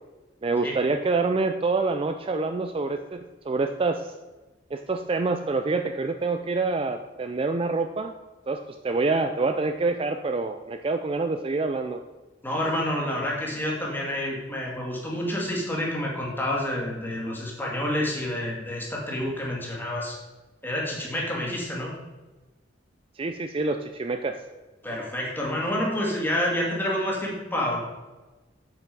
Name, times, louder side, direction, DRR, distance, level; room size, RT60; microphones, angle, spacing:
voice 1, 0.4-4.1 4.7-8.1 8.5-12.0 23.2-24.4, right 3 dB, 30° right, 7 dB, 0.4 m, -26 dB
voice 2, 12.4-20.2 20.6-21.9 24.8-27.8, left 1 dB, 10° left, -3 dB, 2.3 m, -28 dB
7.7 x 7.5 x 5.3 m, 1.2 s
head